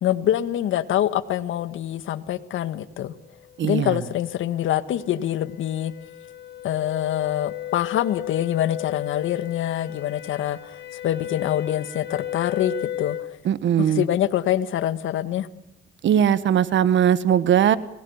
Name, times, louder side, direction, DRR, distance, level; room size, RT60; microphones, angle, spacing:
voice 1, 0.0-3.1 3.6-5.9 6.6-13.4 13.8-15.5, left 11 dB, 80° left, 12 dB, 1.7 m, -25 dB
sound 1, 3.4-13.4, left 12 dB, 60° left, 2.0 m, -35 dB
voice 2, 3.6-4.0 13.4-14.0 16.0-17.8, right 9 dB, 70° right, 15 dB, 1.5 m, -19 dB
30.0 x 20.5 x 7.3 m, 0.86 s
cardioid pair, 90°, 20 cm